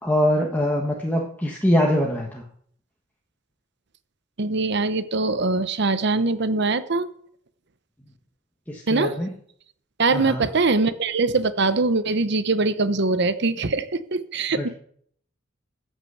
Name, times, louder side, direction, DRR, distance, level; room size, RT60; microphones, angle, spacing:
voice 1, 0.0-2.4 8.7-9.3 10.1-10.4 14.6-14.7, equal, 10° left, -1 dB, 1.4 m, -23 dB
voice 2, 4.4-7.1 8.9-9.1 10.0-14.7, right 3 dB, 60° right, 13 dB, 0.9 m, -22 dB
13.5 x 6.3 x 8.0 m, 0.63 s
head